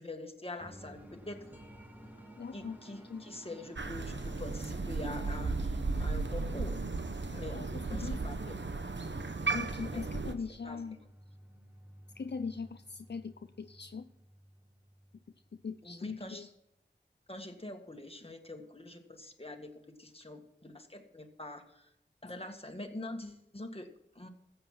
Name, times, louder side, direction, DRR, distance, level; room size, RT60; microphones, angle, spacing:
voice 1, 0.0-1.4 2.5-6.8 7.3-7.6 7.9-8.6 9.9-10.1 10.6-10.8 15.8-16.5 17.3-21.9 22.2-23.9 24.2-24.3, left 2 dB, 30° left, 4 dB, 1.8 m, -45 dB
sound 1, 0.6-15.7, equal, 10° right, 2.0 m, -55 dB
voice 2, 2.4-2.8 3.1-3.2 7.5-8.2 9.5-11.0 12.2-14.1 15.5-16.5, left 5 dB, 65° left, 9 dB, 0.5 m, -41 dB
Crow, 3.8-10.3, right 3 dB, 75° right, 1.0 m, -35 dB
14.0 x 8.0 x 5.9 m, 0.82 s
wide cardioid pair, 45°, 19 cm